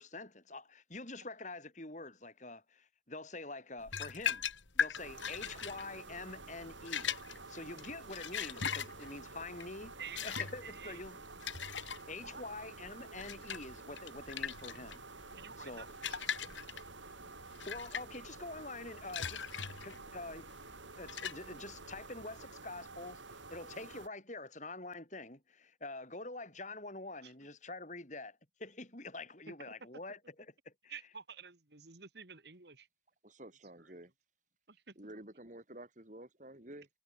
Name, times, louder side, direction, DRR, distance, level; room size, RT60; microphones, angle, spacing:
voice 1, 0.0-4.5 4.7-7.1 7.5-9.9 10.2-11.2 12.1-15.9 17.7-20.5 21.0-30.3 30.6-30.9, left 2 dB, 40° left, 4.7 m, -46 dB
sound 1, 3.8-22.0, left 7 dB, 85° left, 2.5 m, -40 dB
sound 2, 4.9-24.1, right 3 dB, 85° right, 5.3 m, -51 dB
voice 2, 10.0-11.0 12.2-12.4 15.4-16.4 27.2-27.3 30.9-32.9 33.8-33.9 34.7-35.2, right 6 dB, 60° right, 1.9 m, -50 dB
voice 3, 33.2-34.1 35.0-36.9, right 1 dB, 40° right, 2.6 m, -51 dB
head